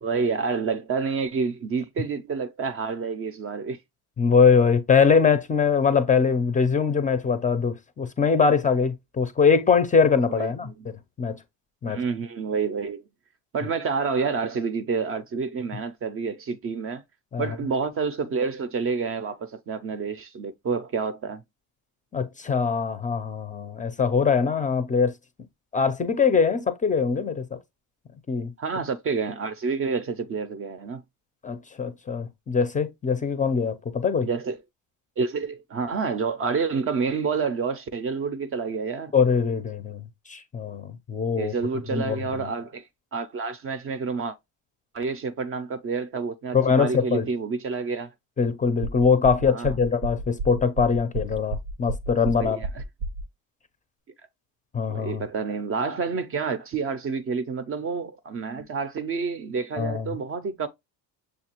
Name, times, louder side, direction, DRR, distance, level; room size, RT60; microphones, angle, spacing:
voice 1, 0.0-3.8 10.3-10.9 11.9-13.0 13.5-17.0 17.4-21.4 28.6-31.0 34.2-34.6 35.2-39.1 41.4-42.9 43.1-44.4 44.9-48.1 49.5-49.8 52.3-52.8 54.9-60.7, right 5 dB, 35° right, 0.5 m, -28 dB
voice 2, 4.2-11.4 11.8-12.0 17.3-17.5 22.1-25.1 25.7-27.6 28.3-28.5 31.4-34.3 39.1-40.0 40.3-41.5 41.9-42.5 46.5-47.3 48.4-52.6 54.7-55.2 59.8-60.1, left 5 dB, 20° left, 0.5 m, -22 dB
sound 1, 48.8-53.2, right 2 dB, 90° right, 0.7 m, -31 dB
6.5 x 2.3 x 2.9 m
supercardioid pair, 95°, 40 cm